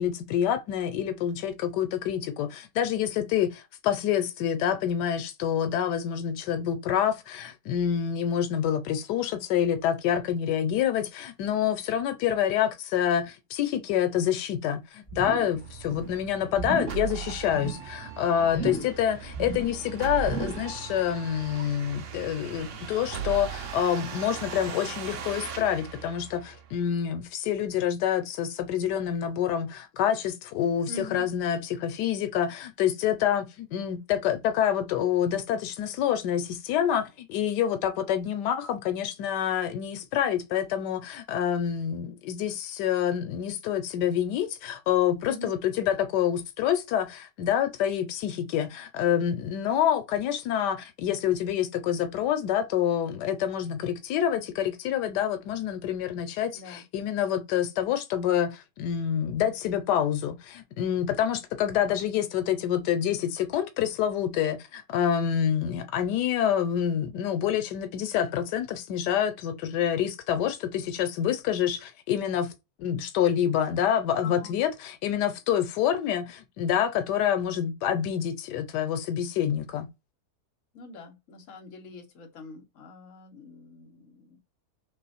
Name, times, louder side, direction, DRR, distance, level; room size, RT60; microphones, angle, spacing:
voice 1, 0.0-72.5 72.8-79.9, left 9 dB, 90° left, 1.2 m, -27 dB
sound 1, 15.1-15.6 15.8-16.2 16.5-17.0 17.4-17.9 18.5-19.0 19.3-19.8 20.2-20.7 21.1-21.2, right 4 dB, 5° left, 1.4 m, -34 dB
sound 2, 15.5-27.0, right 8 dB, 60° right, 0.9 m, -39 dB
voice 2, 18.4-18.8 30.9-31.3 45.2-45.5 56.5-56.8 74.2-74.6 80.7-84.4, left 2 dB, 55° left, 1.2 m, -44 dB
3.0 x 3.0 x 4.1 m
omnidirectional pair, 1.7 m